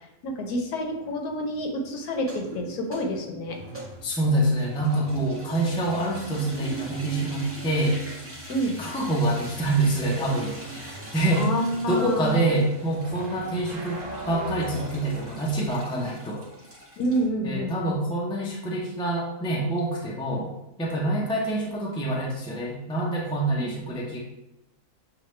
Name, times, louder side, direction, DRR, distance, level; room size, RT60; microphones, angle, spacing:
voice 1, 0.2-3.6 8.5-8.8 11.3-12.5 15.9-16.1 17.0-18.0 20.3-20.4 21.0-21.2 23.6-23.7, equal, 75° left, 2 dB, 1.2 m, -28 dB
sound 1, 0.6-15.7, right 1 dB, 75° right, 0.4 m, -43 dB
sound 2, 2.1-17.3, right 4 dB, 10° right, 0.9 m, -41 dB
voice 2, 4.0-8.0 8.8-10.6 11.1-11.5 11.9-16.4 17.4-20.5 20.8-24.2, right 1 dB, 10° left, -3 dB, 0.3 m, -26 dB
6.5 x 2.4 x 3.2 m, 0.88 s
omnidirectional pair, 1.6 m